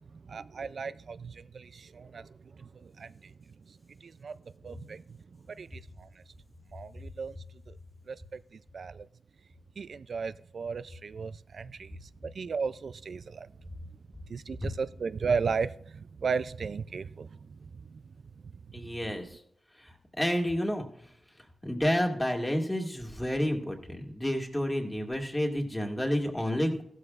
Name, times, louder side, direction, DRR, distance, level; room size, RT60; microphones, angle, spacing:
voice 1, 0.3-2.2 2.6-3.1 4.0-4.3 4.6-5.0 5.5-6.1 6.7-7.3 7.7-7.8 8.1-8.2 8.7-9.0 9.8-11.9 12.2-13.5 14.3-17.3, right 5 dB, 70° right, 0.3 m, -35 dB
voice 2, 18.7-19.4 19.8-20.8 21.6-26.8, equal, 15° left, 2.0 m, -30 dB
15.5 x 12.5 x 2.4 m
wide cardioid pair, 80°, 0 cm